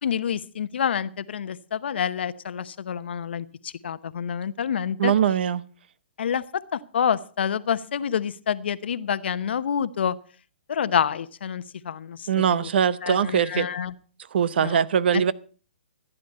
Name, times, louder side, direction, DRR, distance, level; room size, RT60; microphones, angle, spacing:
voice 1, 0.0-5.1 6.2-10.2 10.7-12.7 13.0-13.9 14.6-14.8, left 8 dB, 70° left, 15 dB, 0.8 m, -28 dB
voice 2, 5.0-5.6 12.3-13.7 14.3-15.3, right 8 dB, 60° right, 18 dB, 0.8 m, -22 dB
14.5 x 10.5 x 5.4 m, 0.40 s
hypercardioid pair, 140°, 6 cm